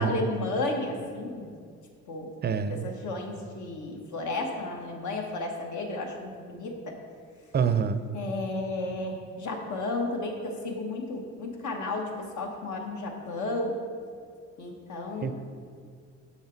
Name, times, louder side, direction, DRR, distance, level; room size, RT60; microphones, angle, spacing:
voice 1, 0.0-1.5 2.0-2.3 2.7-7.0 8.1-13.8 14.6-15.3, left 2 dB, 75° left, 2 dB, 1.3 m, -33 dB
voice 2, 2.4-2.9 7.5-8.0 15.2-15.4, right 7 dB, 35° right, 11 dB, 0.4 m, -26 dB
7.2 x 5.7 x 4.5 m, 2.1 s
cardioid pair, 90°, 30 cm